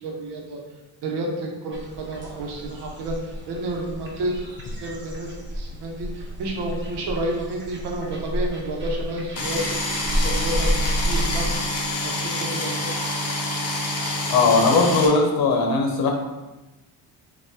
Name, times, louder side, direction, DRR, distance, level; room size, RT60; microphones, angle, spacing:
voice 1, 0.0-0.6 1.0-3.1 3.5-4.3 4.8-6.1 6.4-10.7 11.0-11.5 12.0-13.0, right 1 dB, 70° right, 0 dB, 1.0 m, -30 dB
sound 1, 1.7-11.6, equal, 25° right, 1.0 m, -30 dB
sound 2, 9.4-15.1, left 1 dB, 35° left, 0.9 m, -27 dB
voice 2, 14.3-16.1, left 3 dB, 60° left, 2 dB, 1.0 m, -19 dB
5.6 x 2.6 x 2.8 m, 1.1 s
cardioid pair, 95°, 42 cm